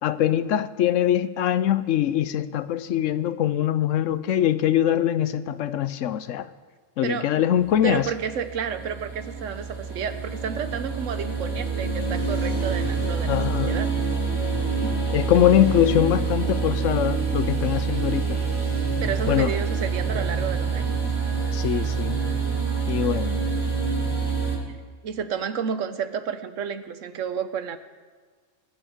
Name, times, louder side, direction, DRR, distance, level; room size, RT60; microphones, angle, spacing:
voice 1, 0.0-6.5 7.0-8.1 13.3-13.7 15.1-18.4 19.3-19.5 21.5-22.2 22.9-23.4, left 11 dB, 85° left, 14 dB, 1.0 m, -23 dB
voice 2, 7.0-7.4 7.8-13.9 14.8-15.0 19.0-21.0 25.0-27.8, right 7 dB, 80° right, 11 dB, 1.2 m, -31 dB
sound 1, 7.6-24.6, right 4 dB, 55° right, 3.9 m, -26 dB
21.0 x 9.0 x 5.0 m, 1.5 s
omnidirectional pair, 1.3 m